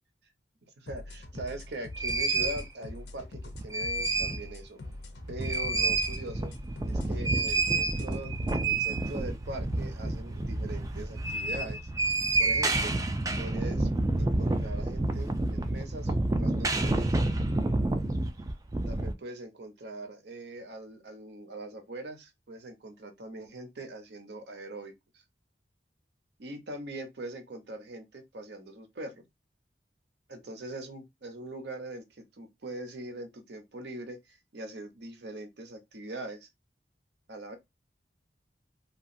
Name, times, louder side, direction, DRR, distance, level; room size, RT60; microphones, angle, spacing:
voice 1, 0.8-4.8 5.3-6.5 6.8-11.8 12.4-12.9 13.4-13.9 14.2-17.2 18.9-24.9 26.4-29.2 30.3-36.5 37.3-37.6, right 2 dB, 70° right, 0.7 m, -42 dB
sound 1, 0.9-8.6, left 2 dB, 75° left, 0.5 m, -44 dB
sound 2, 1.3-1.4 2.0-2.6 3.5-4.5 4.8-4.9 5.2-19.1, right 2 dB, 20° right, 0.3 m, -29 dB
2.9 x 2.4 x 2.5 m
head